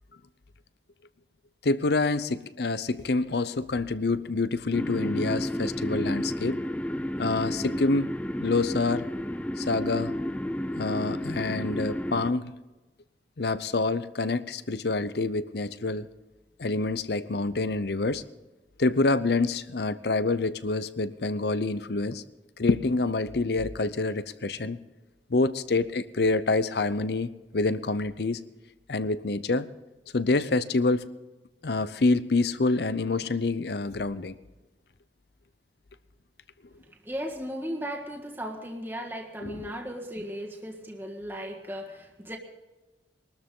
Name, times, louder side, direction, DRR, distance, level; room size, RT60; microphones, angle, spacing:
voice 1, 1.6-6.6 7.2-8.1 8.4-9.1 9.6-10.1 10.8-12.5 13.4-16.1 16.6-18.2 18.8-22.2 22.6-24.8 25.3-28.4 28.9-29.7 30.1-31.0 31.6-34.4 39.4-39.7, left 3 dB, 60° left, 14 dB, 0.7 m, -27 dB
sound 1, 4.7-12.3, left 1 dB, 5° left, 0.5 m, -31 dB
voice 2, 37.0-42.4, equal, 10° right, 0 dB, 1.5 m, -36 dB
22.0 x 13.0 x 3.8 m, 1.1 s
head